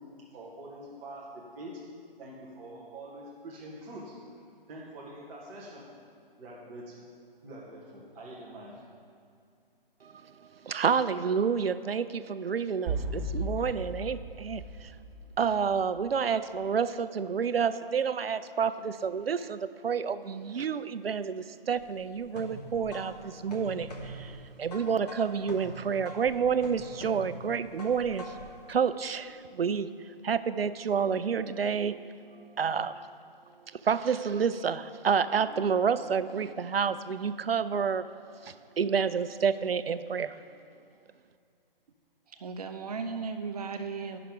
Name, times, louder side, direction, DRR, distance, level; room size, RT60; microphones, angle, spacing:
voice 1, 0.3-1.8 2.2-4.2 4.7-5.9 6.4-7.1 7.4-8.8, right 1 dB, 5° right, -5 dB, 0.4 m, -45 dB
voice 2, 10.6-13.0 13.3-14.9 15.4-28.3 28.7-33.0 33.7-38.1 38.4-40.4, right 6 dB, 85° right, 13 dB, 0.5 m, -29 dB
sound 1, 12.9-15.7, right 1 dB, 20° right, 1.5 m, -35 dB
Qaim Wa Nisf Msarref Rhythm, 21.8-28.6, equal, 45° left, 1.4 m, -44 dB
voice 3, 42.4-44.2, right 5 dB, 40° right, 7 dB, 0.7 m, -36 dB
10.0 x 5.8 x 5.0 m, 2.4 s
figure-of-eight pair, 140°, 29 cm